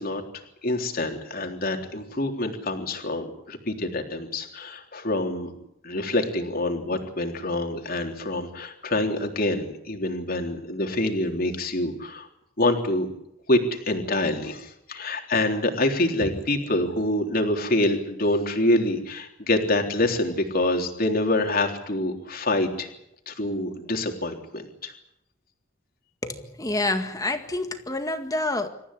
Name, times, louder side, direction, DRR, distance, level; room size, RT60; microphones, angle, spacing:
voice 1, 0.0-5.5 5.8-12.3 12.6-13.1 13.5-22.9 23.3-24.9, left 1 dB, 50° left, 4 dB, 3.6 m, -26 dB
voice 2, 26.2-28.7, left 2 dB, 20° left, 7 dB, 1.9 m, -28 dB
27.5 x 14.5 x 10.0 m, 0.78 s
head